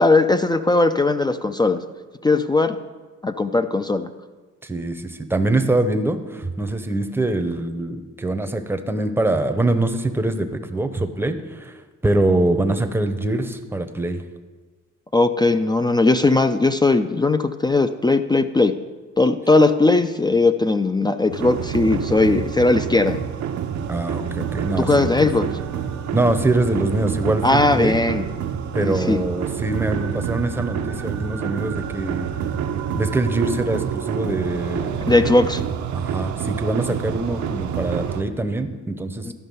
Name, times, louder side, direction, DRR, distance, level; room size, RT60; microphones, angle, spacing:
voice 1, 0.0-1.8 2.2-2.8 3.2-4.1 15.1-18.8 19.2-23.2 24.8-25.5 27.4-28.2 28.8-29.2 35.1-35.6 39.3-39.4, left 2 dB, 15° left, 9 dB, 0.3 m, -18 dB
voice 2, 4.6-14.2 23.9-25.3 26.1-28.0 28.7-32.3 32.9-35.1 35.9-39.3, right 2 dB, 10° right, 8 dB, 0.7 m, -24 dB
sound 1, 21.3-38.2, right 8 dB, 70° right, 0.7 m, -27 dB
12.0 x 5.5 x 5.4 m, 1.3 s
cardioid pair, 90°, 30 cm